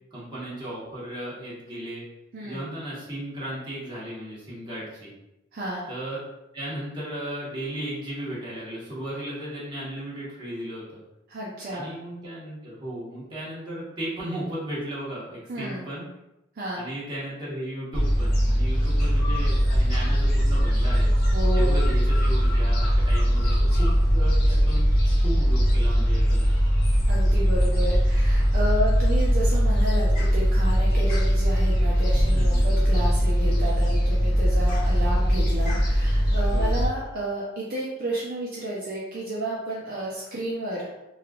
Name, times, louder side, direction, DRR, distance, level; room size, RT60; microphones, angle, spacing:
voice 1, 0.1-2.0 2.4-5.1 5.9-6.2 6.5-11.0 11.7-16.1 16.8-21.1 21.5-24.8 25.2-26.5 32.3-32.7 36.5-36.8, right 1 dB, 25° right, -9 dB, 1.2 m, -35 dB
voice 2, 5.5-5.9 11.3-11.9 15.5-15.9 16.6-16.8 21.3-21.8 27.1-41.0, right 1 dB, 50° right, -6 dB, 0.5 m, -31 dB
Gull seagull, 17.9-36.9, equal, 50° left, 0.8 m, -21 dB
3.2 x 2.4 x 2.4 m, 0.93 s
head